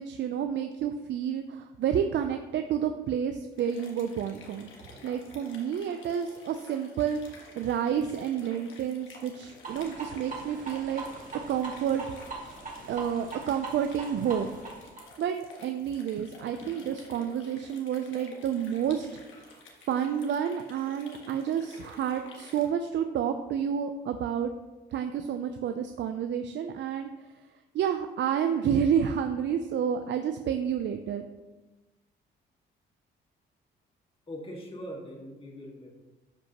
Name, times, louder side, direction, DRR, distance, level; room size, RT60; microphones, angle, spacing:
voice 1, 0.0-4.7 5.0-11.0 11.5-12.0 12.9-14.5 15.2-19.1 19.4-19.6 19.9-24.5 24.9-27.1 27.7-31.3, right 8 dB, 65° right, 7 dB, 0.5 m, -30 dB
sound 1, 3.5-22.7, left 3 dB, 75° left, 1.6 m, -51 dB
sound 2, 9.6-15.0, right 3 dB, 40° right, 2.3 m, -41 dB
voice 2, 34.3-35.9, equal, 25° left, -1 dB, 1.9 m, -41 dB
12.0 x 5.1 x 2.9 m, 1.1 s
cardioid pair, 90°, 20 cm